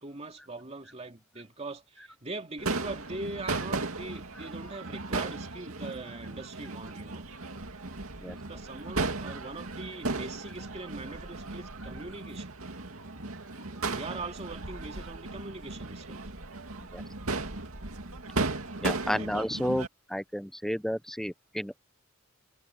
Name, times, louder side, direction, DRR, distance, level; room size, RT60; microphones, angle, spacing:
voice 1, 0.0-7.2 8.5-12.5 13.7-16.2 19.1-19.3, right 2 dB, 30° right, 2.4 m, -41 dB
Crowd / Fireworks, 2.6-19.9, right 3 dB, 80° right, 2.4 m, -36 dB
voice 2, 18.8-21.8, equal, ahead, 0.7 m, -32 dB
head